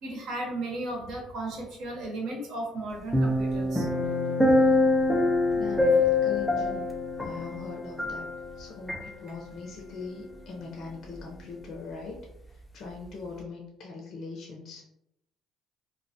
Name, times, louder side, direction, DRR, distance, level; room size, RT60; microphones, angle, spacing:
voice 1, 0.0-3.9, right 2 dB, 70° right, 0 dB, 0.8 m, -35 dB
sound 1, 3.1-8.6 8.9-9.1, left 2 dB, 5° left, 0.5 m, -24 dB
voice 2, 5.5-6.9 7.2-8.3 8.6-12.1 12.7-14.8, left 4 dB, 55° left, -2 dB, 0.5 m, -40 dB
2.2 x 2.1 x 2.7 m, 0.79 s
supercardioid pair, 70°, 0 cm